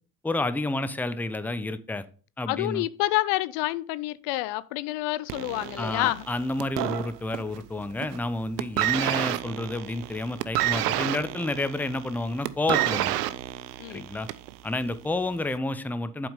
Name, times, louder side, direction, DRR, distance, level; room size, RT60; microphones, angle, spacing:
voice 1, 0.2-2.1 2.4-2.8 5.8-13.2 13.9-14.3 14.6-16.3, left 2 dB, 5° left, 0.6 m, -30 dB
voice 2, 2.5-6.2 13.8-14.0, left 18 dB, 65° left, 0.5 m, -28 dB
sound 1, 5.3-7.6 7.9-8.3 8.6-14.5 15.4-15.5, right 15 dB, 85° right, 0.6 m, -29 dB
7.8 x 5.2 x 5.2 m
hypercardioid pair, 60°, 46 cm